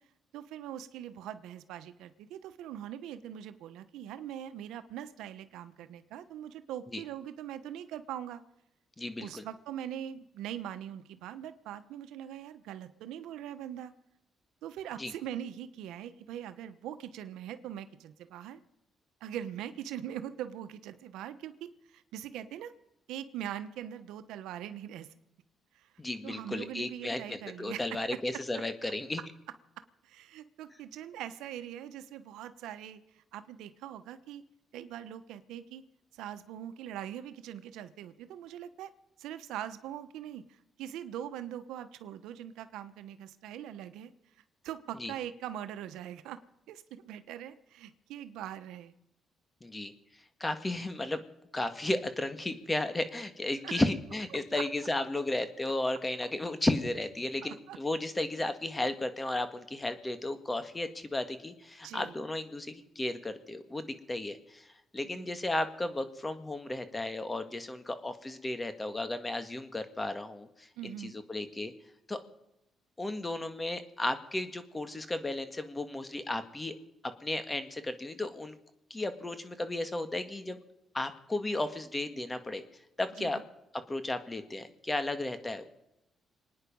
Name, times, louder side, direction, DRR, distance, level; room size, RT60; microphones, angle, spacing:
voice 1, 0.3-8.4 9.2-13.9 14.6-18.6 19.2-22.7 23.1-25.1 25.7-25.9 26.2-28.2 30.0-34.4 34.7-35.8 36.1-38.9 39.2-44.1 44.6-46.4 46.7-48.9 53.6-53.8 57.4-57.8 61.8-62.2 65.1-65.3 70.8-71.1 83.1-83.4, right 10 dB, 90° right, 11 dB, 1.0 m, -42 dB
voice 2, 9.0-9.4 15.0-15.1 26.0-29.2 45.0-45.1 49.6-49.9 50.4-51.2 51.5-64.6 64.9-71.7 72.1-72.2 73.0-76.8 77.2-78.6 78.9-80.6 80.9-82.6 83.0-83.4 83.9-85.6, left 2 dB, 20° left, 10 dB, 1.8 m, -34 dB
26.5 x 9.7 x 5.4 m, 0.89 s
cardioid pair, 90°, 0 cm